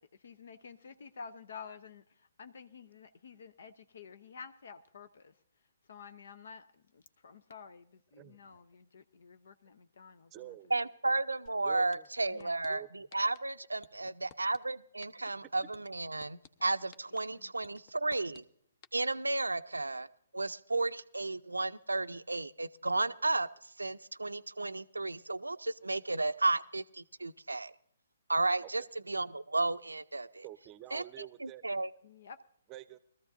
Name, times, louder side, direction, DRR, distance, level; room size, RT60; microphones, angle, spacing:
voice 1, 0.0-5.4 5.9-10.9 12.3-12.8 16.6-17.5 32.0-32.4, left 5 dB, 60° left, 11 dB, 0.7 m, -51 dB
voice 2, 8.1-8.6 10.3-10.7 11.6-12.1 12.6-13.1 28.6-28.9 30.4-31.6 32.7-33.0, right 14 dB, 25° right, 15 dB, 0.7 m, -48 dB
voice 3, 10.7-18.4 18.9-20.1 20.3-23.5 23.8-27.7 28.3-28.8 29.1-30.4 30.9-31.0 31.4-31.9, right 2 dB, 80° right, 14 dB, 0.5 m, -33 dB
sound 1, 11.5-11.6 11.9-12.7 13.1-13.4 13.8-14.6 15.0-15.3 15.7-16.5 16.9-17.2 17.6-18.4 18.8-18.9, left 7 dB, 30° left, 0.8 m, -55 dB
21.5 x 14.0 x 2.6 m, 0.66 s
figure-of-eight pair, 130°, 0 cm